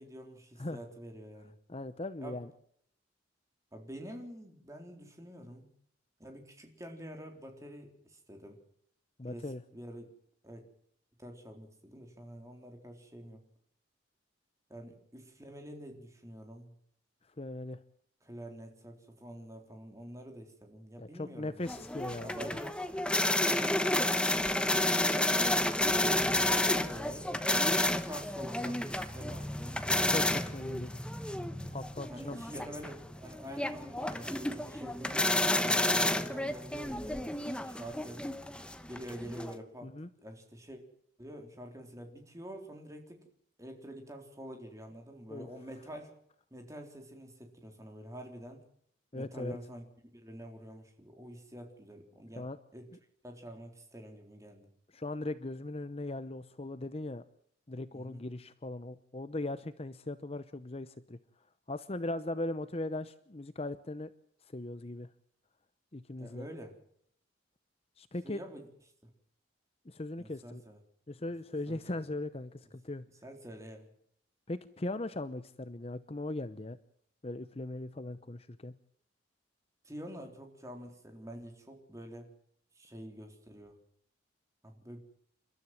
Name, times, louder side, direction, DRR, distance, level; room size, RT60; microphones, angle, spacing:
voice 1, 0.0-1.5 2.2-2.4 3.7-5.7 6.2-8.6 9.3-10.1 10.4-10.6 11.2-13.4 14.7-16.8 18.2-21.8 22.2-22.8 23.4-23.8 25.0-25.4 26.0-27.3 27.7-29.9 32.0-35.2 35.5-38.3 38.9-40.8 41.2-43.3 43.6-46.1 46.5-48.7 49.1-52.9 53.2-54.7 57.9-58.2 66.2-66.8 68.2-68.7 70.2-70.8 71.7-72.0 73.2-73.9 79.8-82.3 82.8-83.8 84.6-85.1, equal, 15° right, 4 dB, 3.8 m, -47 dB
voice 2, 1.7-2.5 9.2-9.6 17.4-17.8 21.0-22.6 30.1-31.0 31.7-32.4 39.8-40.1 45.3-45.5 49.1-49.6 52.4-52.6 54.9-57.2 57.7-61.2 61.7-64.1 64.5-65.1 65.9-66.5 68.0-68.4 69.9-70.6 71.1-73.1 74.5-76.8 77.2-78.8, left 2 dB, 30° left, 12 dB, 0.8 m, -39 dB
sound 1, 21.7-39.5, left 1 dB, 5° left, 1.1 m, -31 dB
29.5 x 13.0 x 7.6 m, 0.66 s
head